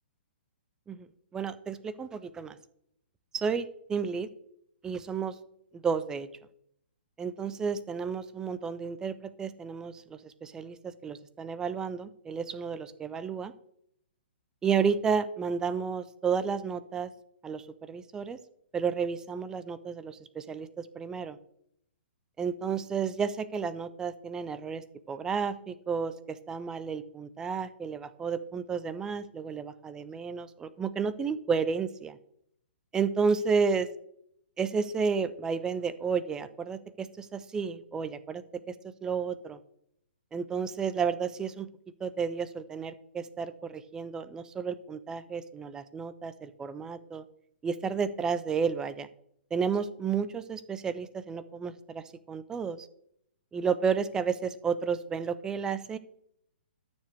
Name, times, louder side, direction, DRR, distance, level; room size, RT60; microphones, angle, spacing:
voice 1, 1.3-2.6 3.3-4.3 4.8-5.3 5.7-6.3 7.2-13.5 14.6-17.1 17.4-18.4 18.7-21.4 22.4-32.2 32.9-33.9 34.6-39.6 40.3-41.7 42.0-47.2 47.6-49.1 49.5-52.9 53.5-56.0, right 6 dB, 10° right, 14 dB, 0.4 m, -32 dB
13.0 x 6.7 x 3.4 m, 0.71 s
figure-of-eight pair, 120°, 6 cm